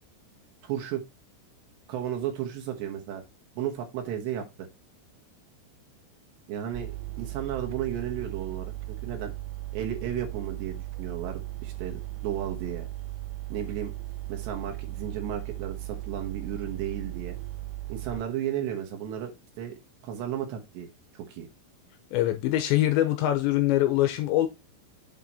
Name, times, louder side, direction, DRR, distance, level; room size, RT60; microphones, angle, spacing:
voice 1, 0.6-1.0 1.9-3.2 3.6-4.7 6.5-8.7 9.0-9.3 9.7-12.9 13.5-13.9 14.3-17.4 17.9-19.3 19.6-20.9 21.1-21.5, right 10 dB, 70° right, 3.0 m, -34 dB
sound 1, 6.7-18.2, right 16 dB, 85° right, 2.5 m, -37 dB
voice 2, 22.1-24.5, left 14 dB, 80° left, 2.7 m, -23 dB
7.8 x 5.1 x 4.1 m
omnidirectional pair, 5.7 m